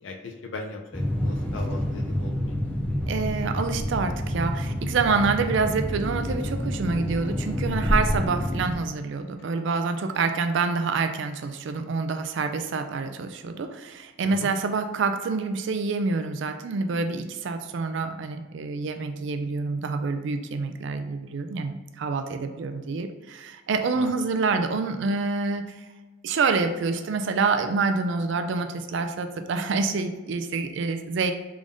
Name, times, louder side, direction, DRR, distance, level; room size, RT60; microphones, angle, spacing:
voice 1, 0.0-2.6 14.2-14.5 23.9-24.1, left 2 dB, 65° left, 2 dB, 0.4 m, -38 dB
sound 1, 0.9-8.7, equal, 5° left, 0.4 m, -28 dB
voice 2, 3.1-25.6 26.2-31.3, right 4 dB, 60° right, 7 dB, 0.3 m, -27 dB
3.5 x 2.5 x 3.5 m, 1.2 s
head